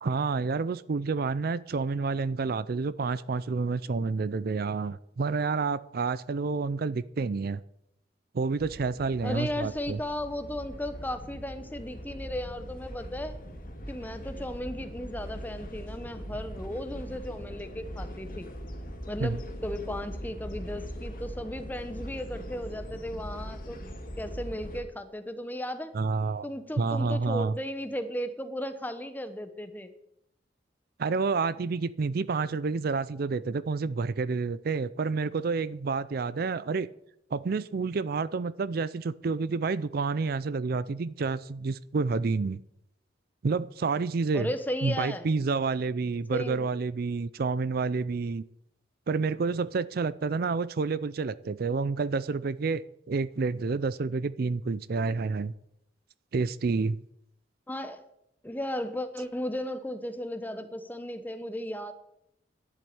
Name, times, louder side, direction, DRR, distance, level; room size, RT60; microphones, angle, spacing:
voice 1, 0.0-7.6 8.3-10.0 19.2-19.4 25.9-26.5 26.8-27.5 31.0-36.9 37.3-42.6 43.4-44.5 44.8-48.4 49.1-55.5 56.3-57.0, right 4 dB, 55° right, 17 dB, 0.4 m, -29 dB
sound 1, 8.6-24.8, equal, 50° left, 2.3 m, -41 dB
voice 2, 9.2-13.4 13.9-18.5 19.1-23.8 24.2-25.9 26.4-29.9 44.3-45.3 46.3-46.8 57.7-58.0 58.4-61.9, left 1 dB, 10° left, 9 dB, 1.0 m, -35 dB
11.0 x 8.3 x 8.6 m, 0.77 s
head